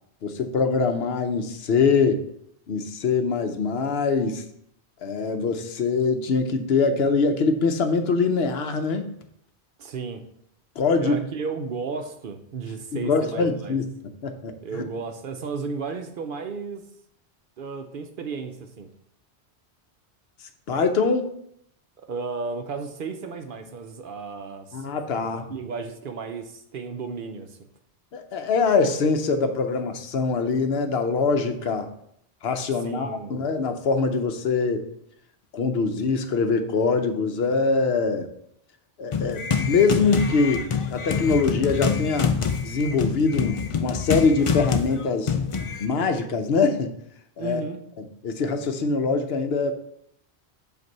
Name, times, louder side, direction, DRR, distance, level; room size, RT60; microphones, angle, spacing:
voice 1, 0.2-2.2 2.7-4.4 5.0-9.1 10.8-11.2 12.9-13.9 14.2-14.8 20.7-21.3 24.7-25.5 28.1-31.9 32.4-34.9 35.5-38.3 39.0-40.6 40.9-42.4 42.6-45.3 45.8-46.9 47.4-47.6 48.0-49.7, left 4 dB, 70° left, 7 dB, 0.9 m, -23 dB
voice 2, 9.8-10.2 11.0-13.8 14.6-16.8 17.6-18.9 22.0-24.9 25.5-27.6 32.8-33.4 47.4-47.8, right 5 dB, 60° right, 6 dB, 0.7 m, -33 dB
sound 1, 39.1-45.9, left 6 dB, 50° left, 0.4 m, -26 dB
7.8 x 2.6 x 5.4 m, 0.72 s
omnidirectional pair, 1.1 m